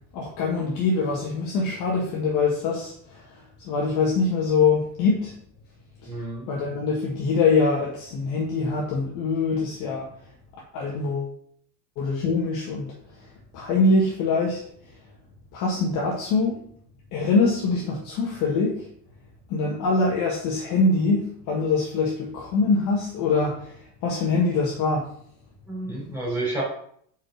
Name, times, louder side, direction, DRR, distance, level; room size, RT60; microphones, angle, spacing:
voice 1, 0.1-3.2 3.6-5.3 6.0-6.1 6.5-10.1 10.7-11.3 12.0-12.9 13.5-14.6 15.5-16.6 17.1-18.9 19.5-25.0, left 3 dB, 45° left, -3 dB, 1.6 m, -24 dB
voice 2, 6.1-6.4 25.7-26.6, right 2 dB, 5° right, -6 dB, 3.5 m, -30 dB
5.6 x 5.0 x 6.4 m, 0.63 s
cardioid pair, 170°, 42 cm